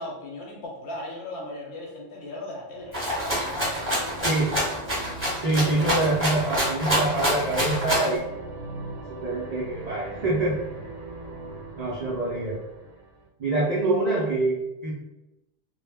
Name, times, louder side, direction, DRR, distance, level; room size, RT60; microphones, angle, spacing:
voice 1, 0.0-4.5 5.5-6.0, left 1 dB, 65° left, -1 dB, 0.9 m, -38 dB
sound 1, 2.8-13.3, right 2 dB, 85° right, 1.0 m, -39 dB
Rattle (instrument), 2.9-8.2, equal, 15° right, 0.7 m, -26 dB
voice 2, 4.2-4.6 5.4-8.3 9.2-10.6 11.8-12.6 13.4-14.9, right 2 dB, 60° right, -6 dB, 0.4 m, -25 dB
2.1 x 2.0 x 3.3 m, 0.97 s
omnidirectional pair, 1.2 m